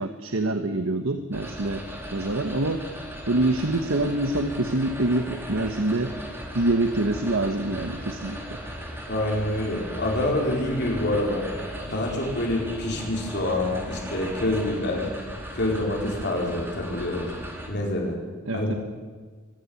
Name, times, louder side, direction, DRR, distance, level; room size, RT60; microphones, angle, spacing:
voice 1, 0.0-1.8 2.1-2.8 3.3-6.1 6.5-8.6 18.4-18.7, right 2 dB, 75° right, 7 dB, 1.3 m, -25 dB
sound 1, 1.3-17.7, equal, 10° right, 4.0 m, -37 dB
voice 2, 9.1-11.5 11.9-15.1 15.5-17.3 17.7-18.2 18.5-18.7, left 1 dB, 55° left, -1 dB, 4.7 m, -26 dB
24.5 x 11.5 x 9.6 m, 1.5 s
head